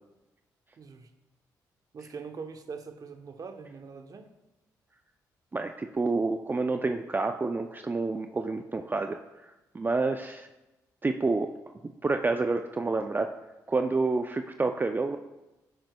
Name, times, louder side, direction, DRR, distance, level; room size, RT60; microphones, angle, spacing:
voice 1, 0.8-1.1 1.9-4.3, right 5 dB, 50° right, 7 dB, 0.9 m, -42 dB
voice 2, 5.5-10.5 11.0-11.5 12.0-13.3 13.7-15.2, right 3 dB, 25° right, 6 dB, 0.5 m, -28 dB
9.4 x 7.5 x 2.3 m, 1.0 s
supercardioid pair, 60°, 8 cm